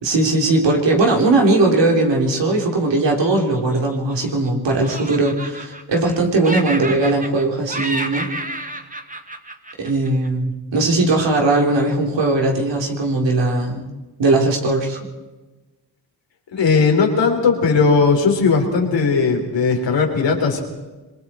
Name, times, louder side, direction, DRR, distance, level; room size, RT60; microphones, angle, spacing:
voice 1, 0.0-8.3 9.8-13.9 14.2-15.0, right 2 dB, 85° right, 0 dB, 3.8 m, -19 dB
Laughter, 3.2-4.5 4.8-6.2 6.4-7.4 7.7-10.3, right 1 dB, 20° right, 2.0 m, -30 dB
voice 2, 16.5-20.6, left 4 dB, 90° left, 2 dB, 4.0 m, -17 dB
26.0 x 22.5 x 4.5 m, 1.2 s
cardioid pair, 60°, 42 cm